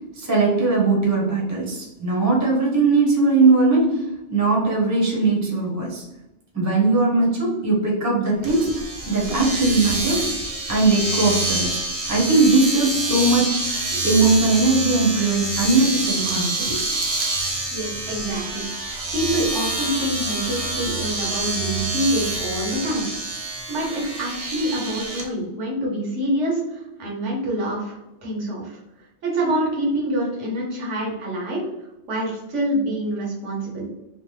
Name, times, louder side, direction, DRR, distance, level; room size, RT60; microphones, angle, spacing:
voice 1, 0.1-4.0 4.3-6.0 6.5-8.7 9.0-10.2 10.7-11.8 12.1-13.6 14.0-16.9, right 3 dB, 15° right, -3 dB, 0.7 m, -19 dB
Domestic sounds home sounds, 8.4-25.3, right 2 dB, 60° right, 0.3 m, -27 dB
voice 2, 17.7-18.6 19.1-23.1 23.7-28.8 29.2-31.7 32.1-33.8, right 1 dB, 80° right, -3 dB, 1.3 m, -26 dB
3.1 x 2.0 x 3.1 m, 0.92 s
omnidirectional pair, 1.2 m